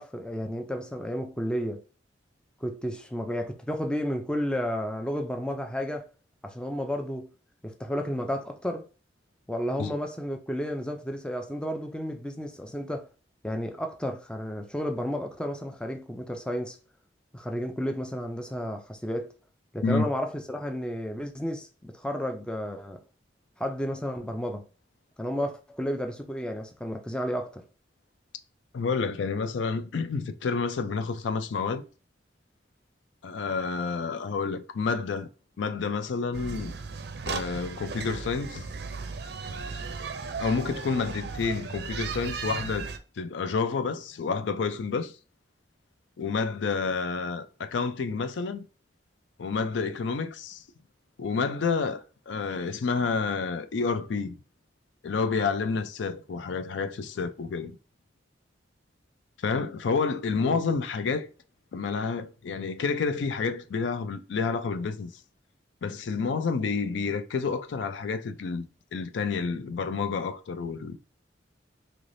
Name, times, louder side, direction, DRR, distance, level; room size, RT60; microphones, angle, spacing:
voice 1, 0.0-1.8 2.6-6.1 6.4-7.3 7.6-8.9 9.5-13.1 13.4-16.8 17.3-19.3 19.7-23.0 23.6-24.6 25.2-27.6 60.4-60.6, equal, 5° left, 0.3 m, -32 dB
voice 2, 28.7-31.8 33.2-35.3 35.6-36.7 37.3-38.7 40.4-42.9 43.2-45.1 46.2-48.6 49.4-50.6 51.2-54.4 55.0-57.8 59.4-61.3 61.7-65.1 65.8-68.6 68.9-71.0, left 4 dB, 85° left, 0.4 m, -29 dB
sound 1, 36.3-43.0, right 5 dB, 60° right, 0.4 m, -36 dB
3.3 x 3.0 x 2.5 m
head